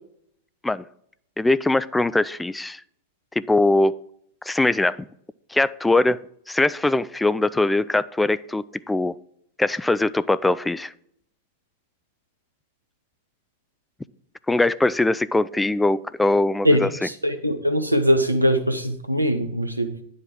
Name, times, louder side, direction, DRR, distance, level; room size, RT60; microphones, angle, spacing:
voice 1, 1.4-2.8 3.5-4.0 4.4-5.0 5.5-6.2 6.5-9.1 9.6-10.9 14.5-16.9, left 2 dB, 5° left, 17 dB, 0.3 m, -21 dB
voice 2, 17.2-19.9, equal, 85° right, 7 dB, 0.8 m, -21 dB
9.5 x 7.8 x 3.7 m, 0.70 s
figure-of-eight pair, 90°, 0 cm